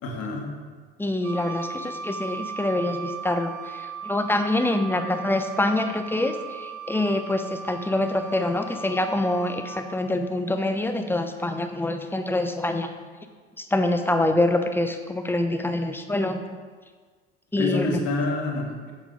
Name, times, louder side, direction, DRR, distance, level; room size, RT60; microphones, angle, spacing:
voice 1, 0.0-0.5 17.5-18.9, left 3 dB, 55° left, 1 dB, 1.8 m, -27 dB
voice 2, 1.0-3.5 4.0-12.9 13.6-16.4 17.5-17.9, left 1 dB, 5° left, 6 dB, 0.8 m, -25 dB
Wind instrument woodwind instrument, 1.2-9.9, right 5 dB, 50° right, 1.4 m, -37 dB
8.3 x 6.5 x 3.9 m, 1.5 s
hypercardioid pair, 65°, 29 cm